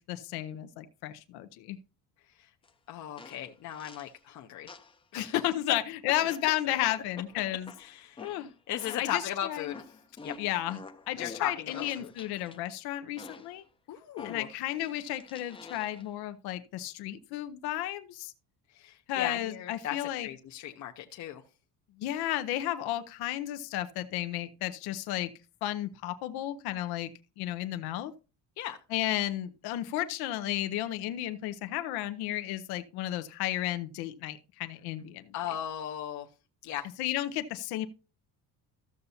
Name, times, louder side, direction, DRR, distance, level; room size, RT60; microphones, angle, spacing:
voice 1, 0.0-1.8 5.2-7.7 8.2-8.5 9.0-9.7 10.4-10.8 11.1-13.7 14.2-18.3 19.1-20.3 22.0-25.3 25.6-27.1 27.4-28.1 28.9-35.3 37.0-37.9, left 14 dB, 85° left, 10 dB, 0.7 m, -33 dB
sound 1, 2.6-2.7 3.2-4.2 4.7-5.5 6.2-9.3 9.7-12.6 13.2-13.6 14.2-16.1, left 4 dB, 15° left, 0.5 m, -48 dB
voice 2, 2.9-4.7 5.1-5.4 7.8-8.2 8.7-9.8 10.2-10.3 11.2-12.1 13.9-14.5 18.7-21.4 28.6-28.8 35.3-36.3 36.6-36.8, left 11 dB, 50° left, 2 dB, 0.7 m, -36 dB
14.0 x 6.9 x 2.7 m, 0.32 s
cardioid pair, 150°, 37 cm